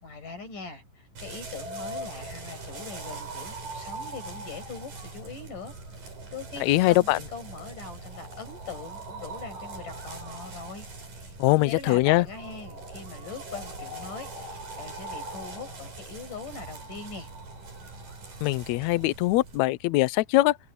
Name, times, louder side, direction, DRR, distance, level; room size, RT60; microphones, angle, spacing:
voice 1, 0.0-10.9 11.2-17.3, left 4 dB, 65° left, 8.5 m, -41 dB
sound 1, 1.2-19.6, right 2 dB, 75° right, 8.2 m, -41 dB
voice 2, 6.6-7.2 11.4-12.3 18.4-20.6, left 18 dB, 90° left, 1.5 m, -22 dB
omnidirectional pair, 3.9 m